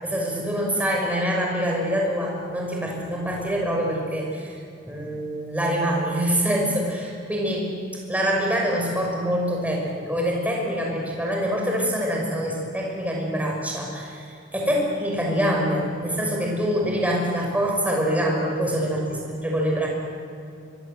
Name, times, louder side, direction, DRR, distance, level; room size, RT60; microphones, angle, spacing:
voice 1, 0.0-4.6 4.8-7.7 8.1-14.3 14.5-19.9, equal, 10° right, -1 dB, 5.9 m, -25 dB
24.0 x 23.0 x 7.9 m, 2.5 s
head